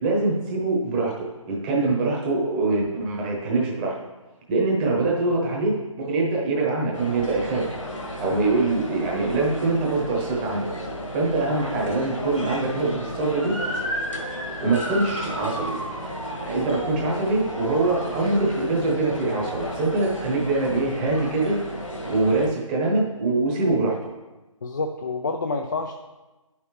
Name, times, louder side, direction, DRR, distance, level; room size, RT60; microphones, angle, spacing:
voice 1, 0.0-3.9 4.5-7.6 8.2-10.6 11.1-13.5 14.6-15.8 16.4-21.5 22.1-24.0, right 3 dB, 15° right, -2 dB, 1.1 m, -24 dB
sound 1, 6.9-22.5, equal, 65° left, 1.5 m, -34 dB
Motor vehicle (road) / Siren, 13.4-18.7, equal, ahead, 0.7 m, -34 dB
voice 2, 24.6-26.0, left 3 dB, 35° left, 4 dB, 0.4 m, -28 dB
10.0 x 5.7 x 3.2 m, 1.1 s
figure-of-eight pair, 145°, 18 cm